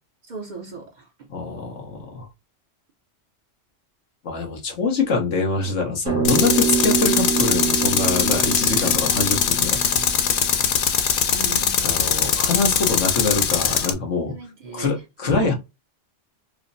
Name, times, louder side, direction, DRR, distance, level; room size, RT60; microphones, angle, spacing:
voice 1, 0.3-0.9 11.3-11.8 14.2-15.0 15.2-15.5, right 3 dB, 50° right, 0.7 m, -36 dB
voice 2, 1.3-2.3 4.2-10.0 11.8-14.3 14.7-15.5, left 4 dB, 85° left, 1.4 m, -24 dB
sound 1, 6.1-10.7, right 6 dB, 80° right, 1.7 m, -26 dB
Tools, 6.2-13.9, left 7 dB, 60° left, 0.6 m, -21 dB
4.9 x 2.0 x 2.6 m
omnidirectional pair, 1.2 m